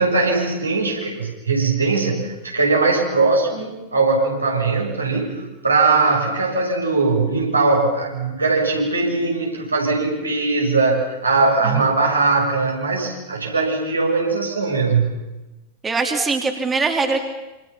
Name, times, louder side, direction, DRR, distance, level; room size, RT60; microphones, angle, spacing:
voice 1, 0.0-15.1, right 3 dB, 80° right, -1 dB, 7.1 m, -20 dB
voice 2, 15.8-17.2, right 4 dB, 15° right, 3 dB, 3.1 m, -22 dB
27.5 x 27.5 x 5.8 m, 1.0 s
figure-of-eight pair, 90°, 0 cm